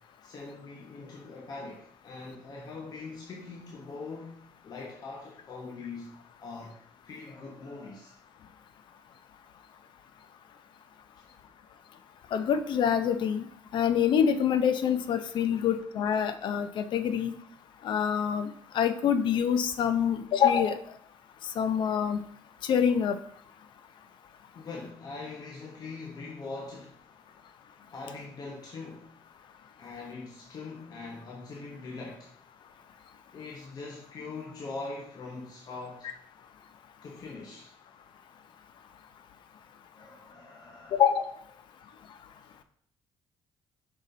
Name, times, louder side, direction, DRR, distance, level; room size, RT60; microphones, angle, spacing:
voice 1, 0.2-6.8 7.0-8.2 11.2-11.3 15.5-15.7 24.5-27.0 27.9-29.2 29.8-32.3 33.3-36.1 37.0-37.7 39.9-41.0, left 3 dB, 50° left, 1.2 m, -42 dB
voice 2, 12.3-13.4 13.7-17.3 17.8-20.8 21.6-22.2 22.6-23.2 40.9-41.3, left 8 dB, 65° left, 0.7 m, -26 dB
5.8 x 4.1 x 4.0 m
cardioid pair, 85°, 9 cm